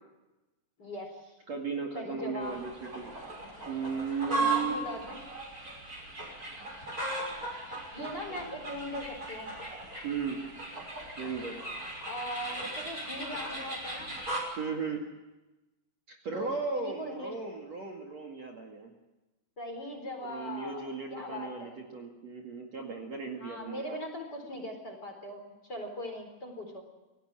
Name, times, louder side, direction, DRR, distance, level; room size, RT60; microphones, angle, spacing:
voice 1, 0.8-1.3 1.9-2.6 4.3-5.2 7.9-9.5 12.1-14.1 16.3-17.3 19.6-21.8 23.4-26.8, left 1 dB, 25° left, 3 dB, 4.3 m, -40 dB
voice 2, 1.5-3.1 3.6-4.9 8.0-8.7 10.0-10.4 11.2-11.6 14.6-15.0 16.1-18.9 20.2-24.0, right 5 dB, 45° right, 1 dB, 2.9 m, -36 dB
sound 1, 2.4-14.4, right 2 dB, 20° right, 6.3 m, -37 dB
28.5 x 18.0 x 7.6 m, 1.1 s
omnidirectional pair, 4.8 m